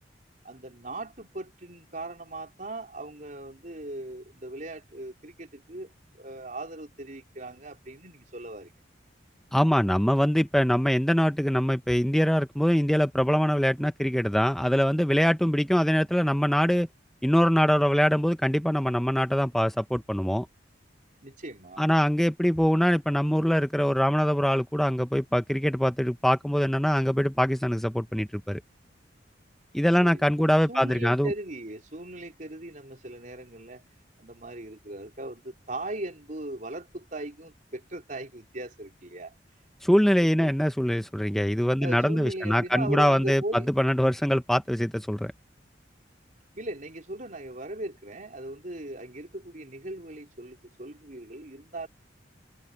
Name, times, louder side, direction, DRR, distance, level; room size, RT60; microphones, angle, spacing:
voice 1, 0.4-5.9 6.2-8.7 21.2-21.8 30.0-30.2 30.7-33.8 34.2-39.3 40.2-40.5 41.8-43.7 46.6-51.9, right 1 dB, 45° right, 3.9 m, -38 dB
voice 2, 9.5-16.9 17.2-20.5 21.8-28.6 29.7-31.3 39.8-45.3, equal, ahead, 0.5 m, -23 dB
head